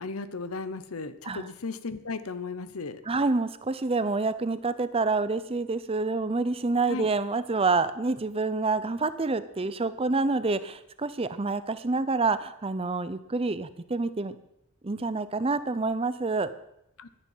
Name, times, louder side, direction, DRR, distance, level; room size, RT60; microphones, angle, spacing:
voice 1, 0.0-3.0 6.9-7.1 17.0-17.1, left 4 dB, 80° left, 13 dB, 0.9 m, -35 dB
voice 2, 3.1-14.4 14.8-16.5, right 3 dB, 25° right, 13 dB, 0.6 m, -27 dB
11.0 x 9.8 x 7.3 m, 0.81 s
head